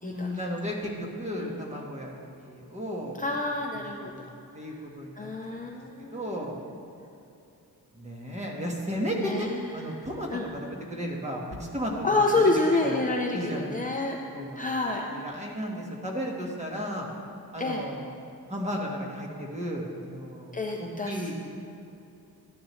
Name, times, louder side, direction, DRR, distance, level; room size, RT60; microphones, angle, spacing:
voice 1, 0.0-3.2 3.7-3.8 4.1-4.3 4.5-5.3 5.6-6.5 7.9-13.0 13.3-13.9 14.3-14.7 15.1-17.1 17.5-18.1 18.5-21.3, equal, 20° right, -1 dB, 1.5 m, -34 dB
voice 2, 3.2-4.1 5.2-6.5 9.2-9.9 10.3-10.5 12.0-14.2 14.6-15.0 17.6-17.8 20.5-21.3, left 2 dB, 20° left, 0 dB, 0.7 m, -28 dB
13.5 x 9.9 x 3.2 m, 2.6 s
wide cardioid pair, 130°, 38 cm